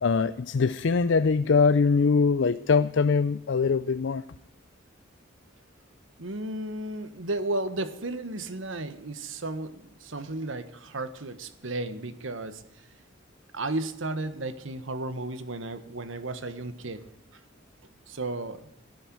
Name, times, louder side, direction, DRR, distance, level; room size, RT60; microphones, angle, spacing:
voice 1, 0.0-4.2, left 5 dB, 65° left, 0.5 m, -22 dB
voice 2, 6.2-12.6 13.5-17.1 18.1-18.7, right 2 dB, 85° right, 1.3 m, -34 dB
12.5 x 10.5 x 9.3 m
head